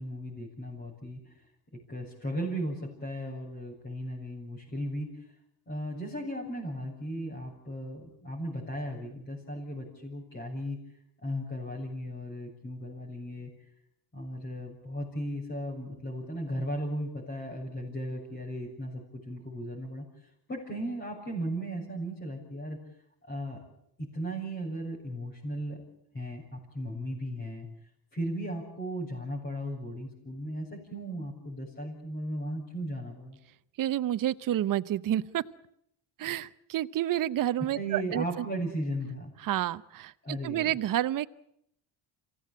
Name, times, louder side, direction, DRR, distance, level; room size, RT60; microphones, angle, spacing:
voice 1, 0.0-1.3 1.9-5.2 5.7-10.8 11.2-13.5 14.1-20.1 20.5-22.8 23.3-23.6 24.0-25.8 26.1-27.7 28.1-33.4 37.7-39.3 40.2-40.8, equal, 30° left, -5 dB, 7.2 m, -36 dB
voice 2, 33.8-35.4 36.2-38.4 39.4-41.3, right 12 dB, 50° right, 13 dB, 0.9 m, -29 dB
27.0 x 16.5 x 8.6 m, 0.74 s
cardioid pair, 115°, 41 cm